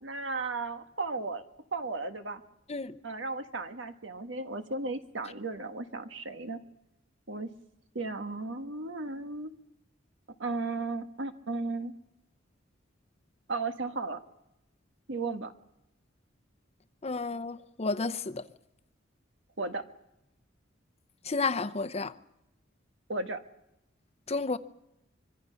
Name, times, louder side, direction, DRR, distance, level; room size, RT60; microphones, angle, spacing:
voice 1, 0.0-1.4 1.7-2.4 3.0-6.6 7.3-7.5 7.9-9.5 10.4-11.9 13.5-14.2 15.1-15.5 19.6-19.8 23.1-23.4, right 3 dB, 70° right, 1.5 m, -35 dB
voice 2, 17.0-18.4 21.2-22.1 24.3-24.6, left 3 dB, 35° left, 0.7 m, -31 dB
25.0 x 23.0 x 5.8 m
head